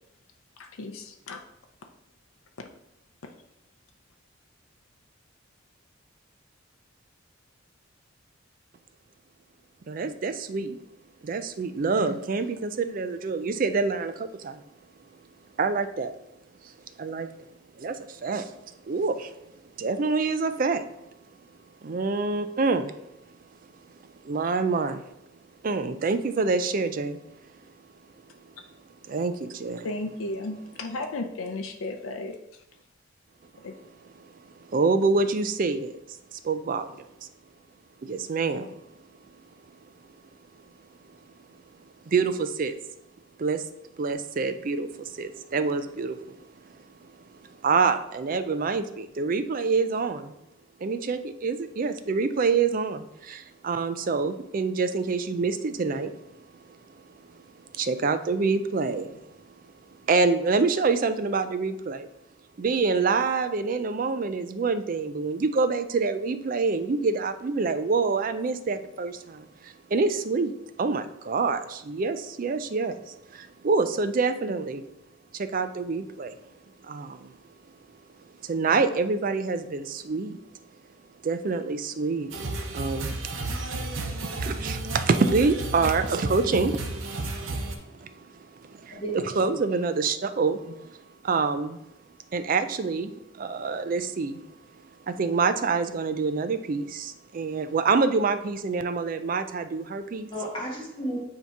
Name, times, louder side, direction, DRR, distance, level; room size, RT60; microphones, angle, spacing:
voice 1, 0.6-1.4 29.8-32.4 33.6-33.7, left 2 dB, 80° left, 4 dB, 0.5 m, -34 dB
voice 2, 9.9-10.8 11.2-14.6 15.6-16.1 16.6-16.7 17.0-17.3 17.8-18.5 18.9-19.3 19.8-20.9 21.8-23.0 24.0-25.1 25.6-27.2 29.1-29.9 33.7-35.9 36.3-36.9 37.2-37.3 38.0-38.7 42.1-42.8 43.4-43.6 44.0-46.3 47.3-50.3 50.8-56.4 57.3-57.4 57.7-59.2 60.1-62.1 62.6-74.8 75.3-76.3 76.8-77.3 78.4-80.4 81.2-89.0 89.4-91.0 91.2-91.8 92.3-94.4 95.0-100.3, right 4 dB, 40° right, 10 dB, 0.3 m, -27 dB
sound 1, 82.3-87.7, right 2 dB, 70° right, 0.8 m, -32 dB
voice 3, 88.9-89.8 100.3-101.2, right 1 dB, 25° left, -3 dB, 1.3 m, -34 dB
8.1 x 2.9 x 4.6 m, 0.85 s
head